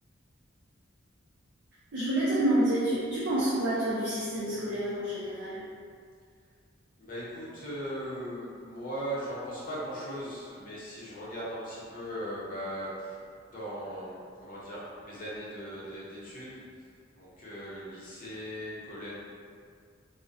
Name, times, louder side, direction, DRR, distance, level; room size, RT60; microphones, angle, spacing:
voice 1, 1.9-5.6, right 1 dB, 60° right, -9 dB, 0.4 m, -28 dB
voice 2, 7.0-13.2 13.5-16.6 17.2-19.1, equal, 45° left, -8 dB, 0.6 m, -38 dB
2.5 x 2.1 x 2.5 m, 2.2 s
head